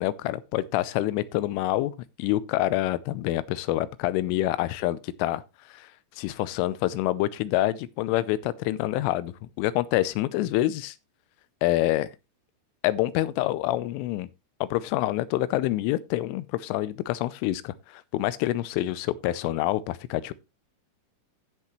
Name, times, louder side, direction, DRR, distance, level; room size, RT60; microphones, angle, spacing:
voice 1, 0.0-1.9 2.2-5.4 5.7-5.9 6.2-11.0 11.6-12.1 12.8-14.3 14.6-20.3, left 15 dB, 90° left, 3.2 m, -27 dB
16.0 x 5.9 x 3.1 m
omnidirectional pair, 5.6 m